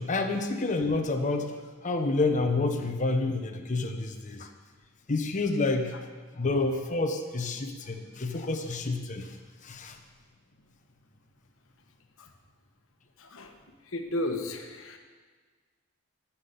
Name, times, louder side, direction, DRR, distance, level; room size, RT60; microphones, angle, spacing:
voice 1, 0.0-1.5 1.8-4.5 5.1-5.9 6.3-9.3 9.6-10.0, left 3 dB, 35° left, 5 dB, 0.8 m, -28 dB
voice 2, 13.2-13.6 13.8-15.0, left 1 dB, 65° left, 5 dB, 1.2 m, -34 dB
12.0 x 5.9 x 8.2 m, 1.5 s
head